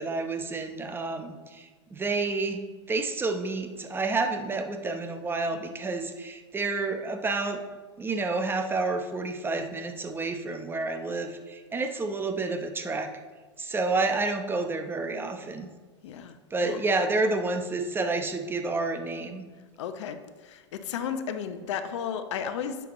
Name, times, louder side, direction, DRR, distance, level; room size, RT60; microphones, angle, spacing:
voice 1, 0.0-2.6 2.9-7.6 8.0-13.1 13.6-15.7 16.5-19.5, right 3 dB, 15° right, 6 dB, 0.8 m, -29 dB
voice 2, 16.0-16.3 16.6-17.1 19.8-22.8, left 7 dB, 70° left, 9 dB, 0.8 m, -34 dB
10.0 x 6.9 x 3.1 m, 1.3 s
hypercardioid pair, 105°, 16 cm